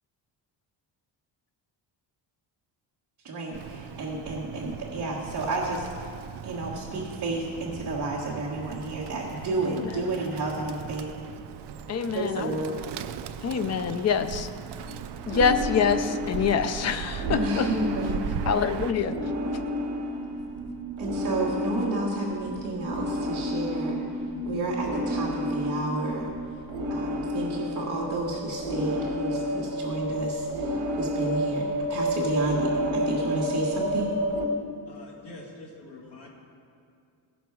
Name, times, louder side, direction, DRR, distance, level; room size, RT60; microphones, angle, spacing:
voice 1, 3.2-5.9 6.4-11.1 12.1-12.7 17.3-18.2 21.0-24.0 24.4-26.3 26.9-34.2, right 2 dB, 40° right, -5 dB, 1.4 m, -31 dB
Bird, 3.5-18.9, right 8 dB, 65° right, 0.5 m, -38 dB
voice 2, 9.7-10.0 11.9-12.6 13.4-14.5 15.3-17.7 18.5-19.2, left 6 dB, 40° left, 10 dB, 0.4 m, -25 dB
sound 1, 14.8-34.5, equal, 90° right, 1.4 m, -31 dB
voice 3, 34.9-36.3, left 2 dB, 65° left, -2 dB, 2.2 m, -45 dB
16.5 x 6.1 x 4.7 m, 2.4 s
wide cardioid pair, 180°, 45 cm